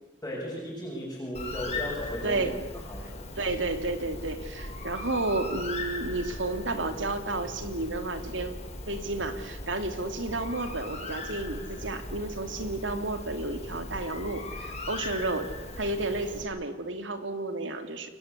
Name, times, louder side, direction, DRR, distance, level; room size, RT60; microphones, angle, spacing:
voice 1, 0.2-2.5 2.8-3.2, equal, 15° left, -5 dB, 7.8 m, -36 dB
Bird, 1.3-16.4, left 2 dB, 35° left, 6.5 m, -39 dB
voice 2, 2.2-2.6 3.4-8.6 8.9-15.5 15.8-18.1, right 2 dB, 85° right, 8 dB, 3.0 m, -32 dB
29.0 x 23.5 x 8.4 m, 1.2 s
head